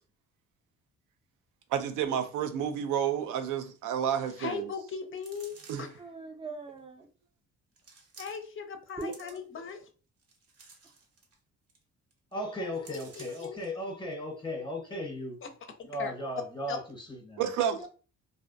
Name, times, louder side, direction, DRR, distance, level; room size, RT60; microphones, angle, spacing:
voice 1, 1.7-4.7 5.7-5.8 17.4-17.9, right 9 dB, 85° right, 0.5 m, -30 dB
voice 2, 4.4-5.9 8.2-9.8 12.6-13.6 15.4-15.5 16.0-16.1 16.7-16.8, left 6 dB, 45° left, 0.4 m, -39 dB
sound 1, 5.2-6.0 6.8-6.9 7.8-8.6 8.9-9.7 10.2-11.4 11.7-11.8 12.1-12.3 12.8-13.7 14.1-14.2, right 4 dB, 55° right, 0.7 m, -53 dB
voice 3, 6.0-7.1 9.0-9.8 17.8-17.9, right 3 dB, 20° right, 0.5 m, -41 dB
voice 4, 12.3-15.4 15.9-17.4, left 1 dB, 15° left, 0.8 m, -36 dB
2.5 x 2.1 x 2.5 m
cardioid pair, 90°, 30 cm